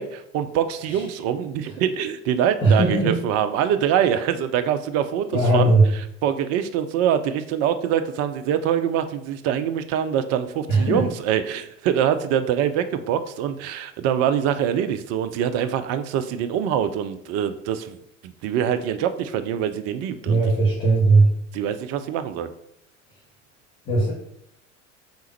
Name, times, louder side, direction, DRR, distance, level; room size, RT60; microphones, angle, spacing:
voice 1, 0.0-5.7 6.2-18.0 18.2-20.4 21.5-22.5, right 9 dB, 40° right, 10 dB, 0.5 m, -24 dB
voice 2, 2.6-3.2 5.3-5.8 10.7-11.0 20.3-21.3 23.8-24.1, right 2 dB, 30° left, -8 dB, 1.5 m, -18 dB
3.6 x 2.9 x 4.3 m, 0.73 s
figure-of-eight pair, 75°, 39 cm